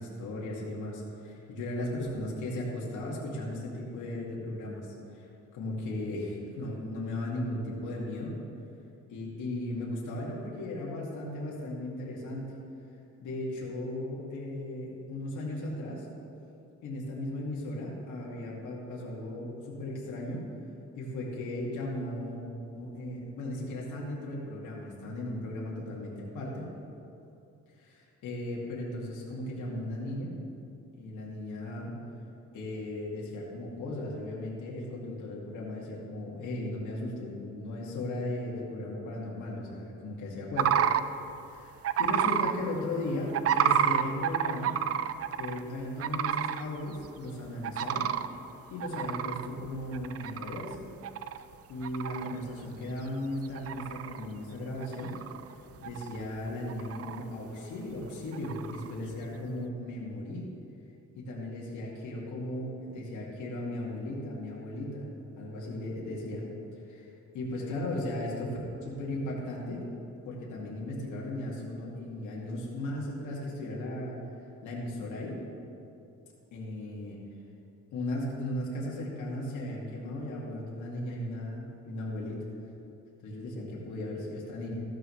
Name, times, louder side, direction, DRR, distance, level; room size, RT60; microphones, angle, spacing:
voice 1, 0.0-5.3 5.5-8.3 9.1-12.5 13.2-16.1 16.8-20.4 21.0-22.4 22.7-26.7 27.8-30.3 31.0-31.9 32.5-40.7 41.5-44.8 45.4-48.1 48.7-50.8 51.7-55.2 55.8-60.4 61.2-65.1 65.4-66.4 66.9-67.1 67.3-69.8 70.3-74.2 74.6-75.4 76.5-77.2 77.9-82.5 83.2-84.8, left 1 dB, 80° left, -4 dB, 2.4 m, -36 dB
sound 1, 40.6-41.0 41.8-42.5 43.3-45.6 46.0-46.6 47.0-47.1 47.6-48.3 48.8-50.8 51.0-51.4 51.8-52.4 52.9-53.0 53.4-54.2 54.8-55.5 55.8-56.4 56.7-57.2 58.3-58.9, right 9 dB, 50° right, 0.5 m, -29 dB
15.0 x 12.0 x 3.3 m, 2.7 s
cardioid pair, 90°, 30 cm